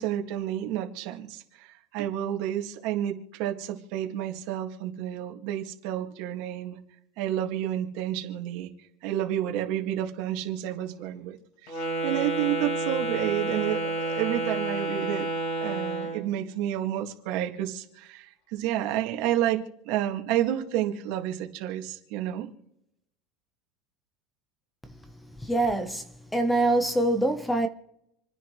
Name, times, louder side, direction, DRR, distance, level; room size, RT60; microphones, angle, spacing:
voice 1, 0.0-6.8 7.2-8.7 9.0-11.4 11.6-15.3 15.6-22.5, right 12 dB, 60° right, 2.0 m, -30 dB
Wind instrument woodwind instrument, 11.7-16.3, right 2 dB, 60° left, 4.7 m, -30 dB
voice 2, 25.4-26.0 26.3-27.7, right 2 dB, 5° left, 1.0 m, -24 dB
28.0 x 10.0 x 3.2 m
supercardioid pair, 130°, 0 cm